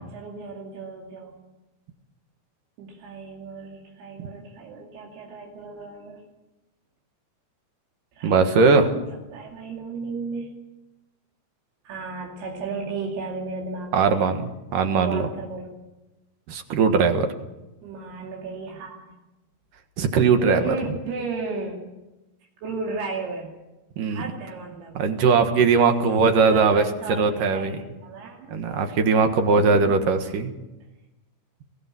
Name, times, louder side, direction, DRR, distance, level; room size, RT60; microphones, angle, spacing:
voice 1, 0.0-1.4 2.8-6.2 8.2-8.4 9.3-10.5 11.8-14.4 15.0-15.8 17.8-19.1 20.4-21.9 22.6-23.5 24.1-25.0 26.4-28.6 29.6-30.0, right 4 dB, 90° right, -2 dB, 4.6 m, -34 dB
voice 2, 8.2-8.9 13.9-14.4 14.7-15.3 16.5-17.3 20.0-20.8 24.0-24.2 24.9-27.8 28.5-30.5, right 4 dB, 65° right, 7 dB, 2.9 m, -20 dB
21.5 x 16.5 x 7.6 m, 1.0 s
omnidirectional pair, 4.5 m